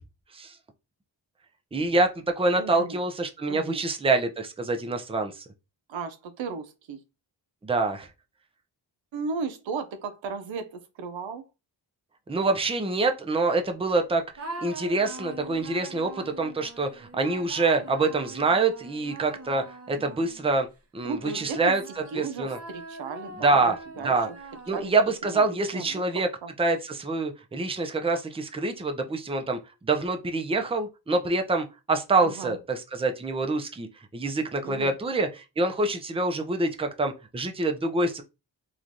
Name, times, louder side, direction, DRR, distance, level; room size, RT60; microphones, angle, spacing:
voice 1, 1.7-2.1 2.4-5.4 7.6-8.1 12.3-14.2 14.6-20.7 20.9-21.8 22.1-22.6 23.4-23.8 24.0-24.3 24.7-26.3 26.6-33.9 34.1-38.2, right 3 dB, 10° right, 0.5 m, -26 dB
voice 2, 2.5-3.0 3.5-3.8 5.9-7.0 9.1-11.4 21.0-21.7 22.1-23.6 24.0-24.2 24.7-24.9 25.3-25.4 25.7-26.0 26.4-26.5 32.2-32.6 34.6-34.9, right 4 dB, 75° right, 0.6 m, -35 dB
sound 1, 14.4-20.6 21.2-25.1, right 2 dB, 30° right, 0.9 m, -43 dB
3.1 x 2.4 x 2.6 m
cardioid pair, 45°, 46 cm